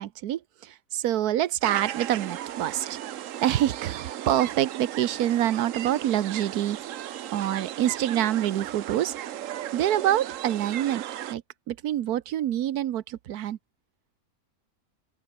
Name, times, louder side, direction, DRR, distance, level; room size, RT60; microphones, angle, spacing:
voice 1, 0.0-3.0 3.4-6.8 7.3-9.1 9.7-11.0 11.3-11.4 11.7-13.6, right 12 dB, 85° right, 1.3 m, -26 dB
sound 1, 1.6-11.3, right 12 dB, 65° right, 1.0 m, -36 dB
open air
omnidirectional pair, 1.6 m